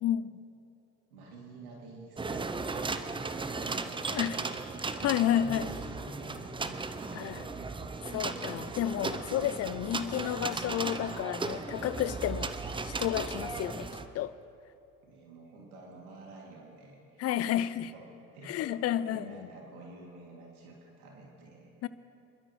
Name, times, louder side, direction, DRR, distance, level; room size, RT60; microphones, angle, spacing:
voice 1, 1.1-8.0 15.0-21.9, right 2 dB, 75° right, -2 dB, 2.8 m, -49 dB
sound 1, 2.2-14.1, right 3 dB, 10° right, 0.7 m, -36 dB
voice 2, 5.0-5.7 7.1-7.4 8.1-12.5 12.9-13.9 14.1-14.3 17.2-17.9 18.5-19.4 21.8-21.9, left 11 dB, 35° left, 16 dB, 0.5 m, -31 dB
26.5 x 12.5 x 3.2 m, 2.7 s
hypercardioid pair, 75°, 44 cm